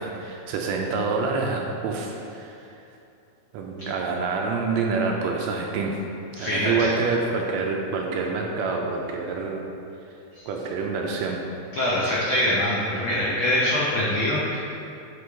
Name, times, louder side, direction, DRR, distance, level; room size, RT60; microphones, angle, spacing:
voice 1, 0.0-2.7 3.5-6.0 6.4-9.7 10.5-11.4, right 4 dB, 80° right, 1 dB, 1.7 m, -27 dB
voice 2, 6.3-6.9 10.3-10.4 11.7-14.6, left 1 dB, 75° left, -6 dB, 1.1 m, -24 dB
8.2 x 5.0 x 3.5 m, 2.7 s
omnidirectional pair, 3.5 m